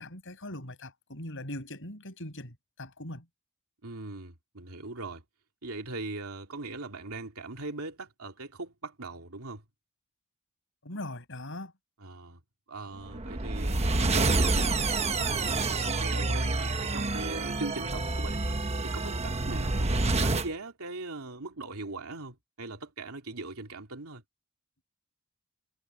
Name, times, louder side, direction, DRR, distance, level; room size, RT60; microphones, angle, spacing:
voice 1, 0.0-3.3 10.8-11.7, left 1 dB, 60° left, 7.7 m, -40 dB
voice 2, 3.8-5.2 5.6-9.6 12.0-12.4 12.7-14.8 15.1-18.6 18.8-24.2, right 2 dB, 70° right, 2.9 m, -40 dB
sound 1, 13.1-20.5, right 3 dB, 30° right, 1.1 m, -28 dB
head